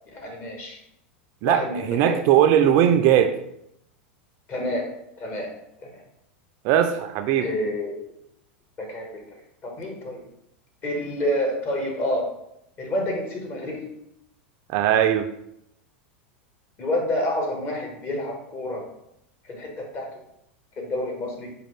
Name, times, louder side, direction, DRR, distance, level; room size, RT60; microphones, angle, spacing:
voice 1, 0.1-0.8 1.4-2.2 4.5-4.9 5.2-5.5 5.8-6.0 7.4-8.0 8.8-9.1 9.6-10.2 10.8-12.3 12.8-13.8 16.8-18.8 19.4-20.1 20.8-21.5, left 1 dB, 35° left, 0 dB, 1.3 m, -28 dB
voice 2, 1.4-3.3 6.6-7.5 14.7-15.3, right 10 dB, 50° right, 7 dB, 0.3 m, -19 dB
5.1 x 2.2 x 3.2 m, 0.78 s
hypercardioid pair, 110°, 6 cm